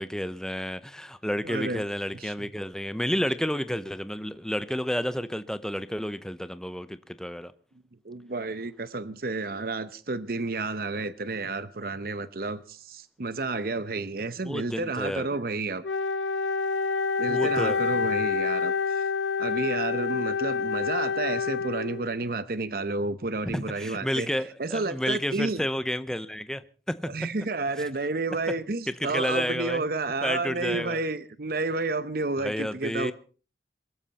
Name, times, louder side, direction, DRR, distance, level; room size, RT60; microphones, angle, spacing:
voice 1, 0.0-7.5 14.4-15.4 17.3-17.8 23.5-26.6 26.9-27.3 28.9-29.8 30.2-31.0 32.4-33.1, equal, 5° left, 0.7 m, -30 dB
voice 2, 1.4-1.8 2.2-2.5 8.0-15.8 17.2-19.0 19.4-25.6 27.0-33.1, right 3 dB, 55° right, 0.8 m, -31 dB
Wind instrument woodwind instrument, 15.8-22.2, left 5 dB, 80° left, 1.0 m, -28 dB
23.0 x 13.5 x 4.2 m
head